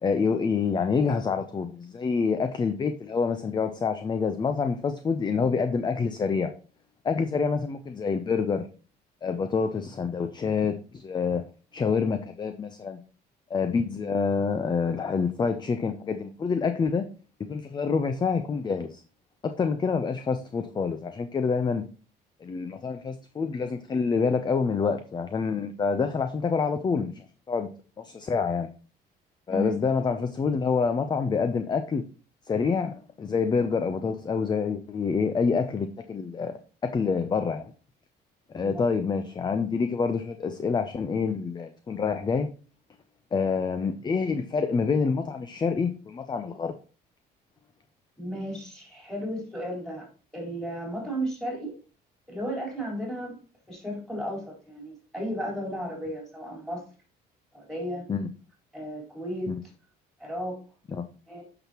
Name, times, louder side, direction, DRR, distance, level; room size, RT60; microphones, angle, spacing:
voice 1, 0.0-6.5 7.0-8.7 9.2-11.5 11.7-13.0 13.5-17.1 17.5-19.0 19.4-21.8 22.4-27.7 28.0-28.7 29.5-32.0 32.5-36.5 36.8-37.7 38.5-42.5 43.3-46.7 58.1-58.3 59.5-59.6 60.9-61.0, left 5 dB, 25° left, 8 dB, 0.6 m, -27 dB
voice 2, 48.2-50.1 50.3-51.7 52.3-53.4 53.7-56.8 57.5-58.1 58.7-59.6 60.2-60.6 61.3-61.4, equal, ahead, -2 dB, 4.2 m, -34 dB
8.7 x 6.0 x 2.9 m, 0.38 s
cardioid pair, 110°, 17 cm